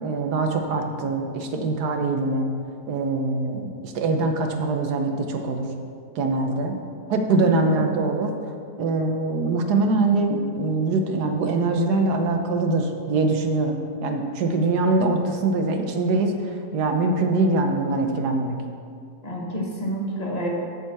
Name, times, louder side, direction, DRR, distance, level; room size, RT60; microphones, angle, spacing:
voice 1, 0.0-2.5 2.9-5.7 6.2-6.8 7.1-8.4 8.8-13.8 14.0-16.3 16.7-18.6, right 3 dB, 85° right, 4 dB, 1.4 m, -23 dB
voice 2, 7.3-7.8 19.2-20.5, right 1 dB, 25° left, -2 dB, 1.3 m, -29 dB
8.5 x 5.4 x 6.6 m, 2.3 s
omnidirectional pair, 1.7 m